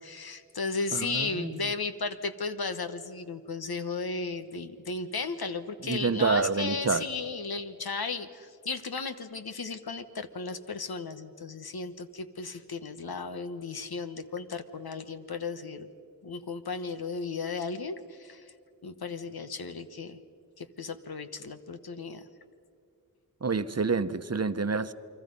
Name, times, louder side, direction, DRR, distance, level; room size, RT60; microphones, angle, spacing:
voice 1, 0.0-15.9 16.2-18.5 18.8-20.2 20.6-22.3, left 4 dB, 90° left, 9 dB, 1.3 m, -35 dB
voice 2, 0.9-1.6 5.8-7.0 23.4-24.9, right 4 dB, 45° right, 12 dB, 0.9 m, -28 dB
29.5 x 23.5 x 5.4 m, 2.5 s
wide cardioid pair, 65°, 36 cm